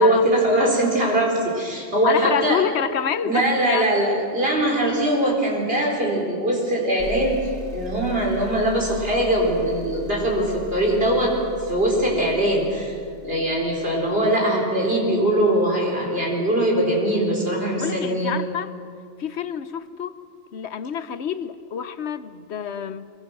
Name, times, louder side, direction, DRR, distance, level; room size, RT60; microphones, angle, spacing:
voice 1, 0.0-2.6 3.2-11.3 11.6-12.9 13.2-18.3, right 1 dB, 60° right, -1 dB, 4.8 m, -21 dB
voice 2, 2.0-3.9 17.8-18.7 19.2-20.1 20.5-23.1, left 8 dB, 80° left, 12 dB, 1.1 m, -27 dB
sound 1, 7.0-14.5, left 4 dB, 5° left, 3.0 m, -39 dB
25.0 x 23.0 x 6.2 m, 2.3 s
omnidirectional pair, 1.1 m